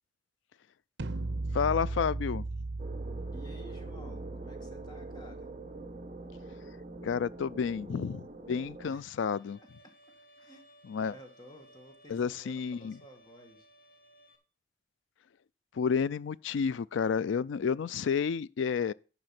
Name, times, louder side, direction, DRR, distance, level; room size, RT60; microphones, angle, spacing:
sound 1, 1.0-7.0, right 2 dB, 60° right, 0.7 m, -38 dB
voice 1, 1.5-2.4 7.0-9.6 10.9-11.1 12.1-13.0 15.7-18.9, left 6 dB, 80° left, 0.4 m, -30 dB
sound 2, 2.8-8.9, right 2 dB, 35° right, 0.9 m, -45 dB
voice 2, 3.3-5.5 8.8-9.1 9.6-9.9 10.4-10.7 11.0-13.7, equal, 25° left, 1.8 m, -53 dB
Bowed string instrument, 9.3-14.4, right 1 dB, 50° left, 1.5 m, -60 dB
10.5 x 5.4 x 5.8 m
head